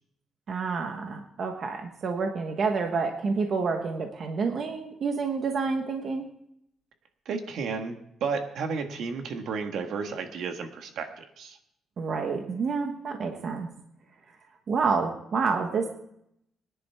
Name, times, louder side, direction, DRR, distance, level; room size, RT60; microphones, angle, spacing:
voice 1, 0.5-6.3 12.0-13.7 14.7-15.9, right 4 dB, 40° right, 4 dB, 1.2 m, -28 dB
voice 2, 7.2-11.6, right 5 dB, 65° right, 6 dB, 1.5 m, -33 dB
23.0 x 10.5 x 3.5 m, 0.76 s
cardioid pair, 175°, 0 cm